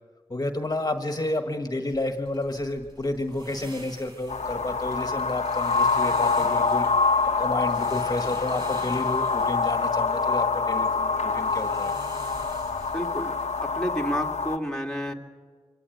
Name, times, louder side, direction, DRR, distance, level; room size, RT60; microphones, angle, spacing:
voice 1, 0.3-6.9 7.2-11.9, left 2 dB, 35° left, 5 dB, 1.6 m, -31 dB
sound 1, 1.9-13.6, right 1 dB, 40° right, 6.3 m, -47 dB
sound 2, 4.3-14.6, left 4 dB, 90° left, 1.0 m, -25 dB
voice 2, 12.9-15.1, equal, 5° left, 2 dB, 2.2 m, -30 dB
24.5 x 17.0 x 9.3 m, 1.5 s
wide cardioid pair, 80°, 11 cm